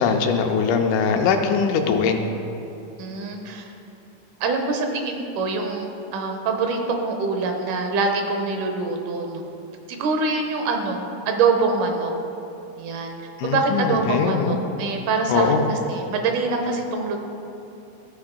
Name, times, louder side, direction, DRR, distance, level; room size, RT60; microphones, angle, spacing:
voice 1, 0.0-2.2 13.4-14.6 15.3-15.7, left 5 dB, 80° left, 5 dB, 2.0 m, -21 dB
voice 2, 3.0-3.6 4.4-9.4 9.9-11.0 11.3-12.1 12.8-13.2 13.4-17.2, right 3 dB, 80° right, 3 dB, 2.3 m, -24 dB
14.0 x 4.8 x 3.6 m, 2.8 s
omnidirectional pair, 3.7 m